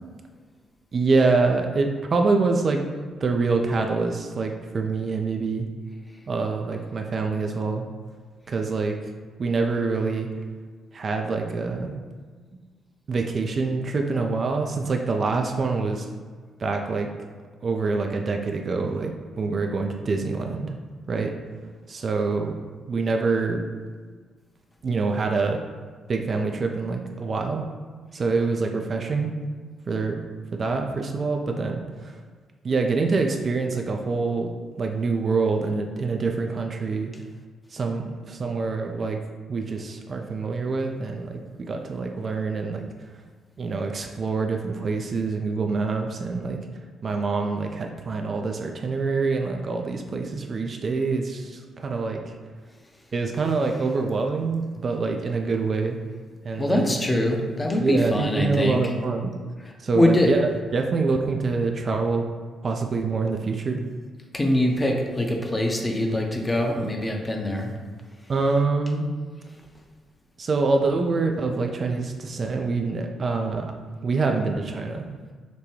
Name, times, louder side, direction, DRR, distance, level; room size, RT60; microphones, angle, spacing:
voice 1, 0.9-2.8 3.2-5.7 6.3-7.9 8.5-9.0 9.4-10.3 10.9-12.0 13.1-16.1 16.6-17.1 17.6-20.7 21.1-21.3 21.9-22.6 22.9-23.6 24.8-25.6 26.1-27.6 28.1-29.3 29.9-30.2 30.5-32.2 32.6-34.5 34.8-37.1 37.7-39.2 39.5-42.9 43.6-46.6 47.0-52.3 53.1-56.0 56.4-57.0 57.8-59.3 59.8-62.2 62.6-63.8 68.3-69.1 70.4-73.7 74.0-75.1, right 4 dB, 45° right, 3 dB, 0.3 m, -25 dB
voice 2, 56.6-58.9 59.6-60.3 64.3-67.7 68.5-68.6, left 1 dB, 20° left, 2 dB, 0.6 m, -23 dB
5.1 x 2.2 x 3.1 m, 1.5 s
figure-of-eight pair, 40°, 0 cm